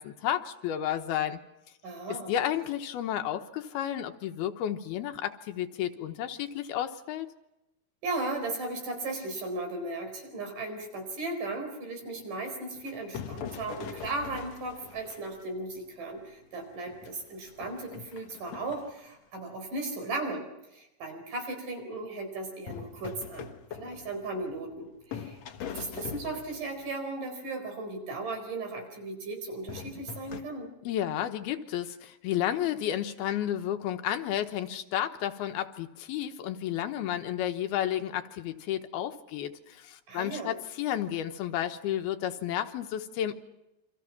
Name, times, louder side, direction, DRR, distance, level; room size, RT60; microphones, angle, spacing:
voice 1, 0.0-1.4 2.3-7.3 30.8-43.3, left 11 dB, 80° left, 7 dB, 3.1 m, -32 dB
voice 2, 1.8-2.3 8.0-25.4 25.6-30.7 40.1-40.5, right 2 dB, 55° right, 4 dB, 6.0 m, -36 dB
sound 1, 12.7-15.6 16.1-16.2 16.7-19.0 22.7-24.8 25.1-26.9 29.7-30.4, left 7 dB, 60° left, 2.1 m, -42 dB
28.5 x 25.5 x 6.0 m, 0.90 s
omnidirectional pair, 4.5 m